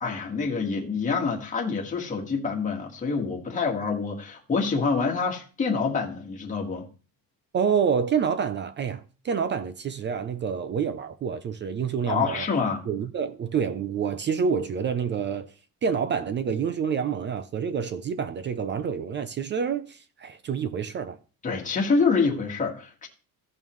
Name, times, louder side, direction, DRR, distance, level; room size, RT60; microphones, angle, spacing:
voice 1, 0.0-6.8 12.1-12.8 21.4-23.1, left 4 dB, 20° left, 1.6 m, -26 dB
voice 2, 7.5-12.5 12.9-15.5 15.8-21.2, right 6 dB, 30° right, 0.4 m, -28 dB
16.0 x 5.4 x 3.1 m
cardioid pair, 175°, 40 cm